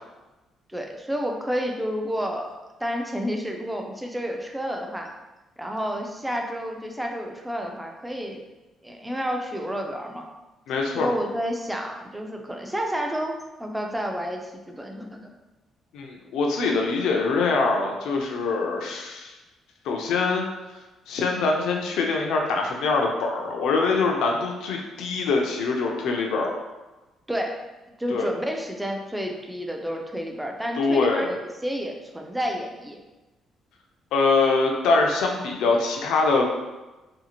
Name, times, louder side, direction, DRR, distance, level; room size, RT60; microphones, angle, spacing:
voice 1, 0.7-5.1 5.6-8.4 8.8-10.3 10.9-15.3 27.3-27.6 28.0-33.0, equal, 5° right, 2 dB, 0.3 m, -30 dB
voice 2, 10.7-11.1 15.9-19.3 19.9-20.5 21.1-26.5 28.1-28.3 30.8-31.3 34.1-36.5, left 4 dB, 85° left, 1 dB, 0.4 m, -23 dB
2.6 x 2.4 x 2.8 m, 1.1 s
cardioid pair, 150°, 0 cm